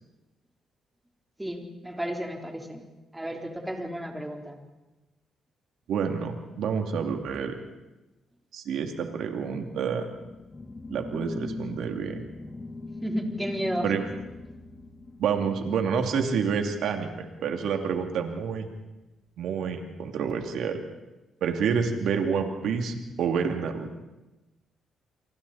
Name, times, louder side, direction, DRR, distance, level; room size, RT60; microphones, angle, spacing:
voice 1, 1.4-2.9 3.1-4.6 13.0-13.9, right 1 dB, 10° right, 2 dB, 3.9 m, -33 dB
voice 2, 5.9-7.6 8.5-10.1 10.9-12.2 13.8-14.0 15.2-18.7 19.4-20.8 21.4-23.9, right 6 dB, 80° right, 4 dB, 2.6 m, -28 dB
sound 1, 9.5-17.3, left 3 dB, 30° left, 2.2 m, -41 dB
29.5 x 24.0 x 4.3 m, 1.0 s
cardioid pair, 90°, 0 cm